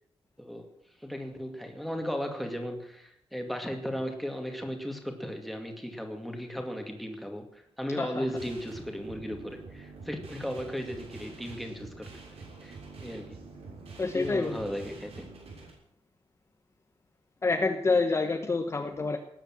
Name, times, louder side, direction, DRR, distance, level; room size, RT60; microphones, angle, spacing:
voice 1, 0.4-0.7 1.0-12.1 12.6-13.5 14.1-15.3, equal, ahead, 3 dB, 2.3 m, -36 dB
sound 1, 8.4-15.7, right 3 dB, 75° right, 6.5 m, -46 dB
voice 2, 14.0-14.6 17.4-19.2, left 3 dB, 25° left, 5 dB, 1.1 m, -27 dB
19.0 x 9.9 x 7.7 m, 0.73 s
wide cardioid pair, 180°, 10 cm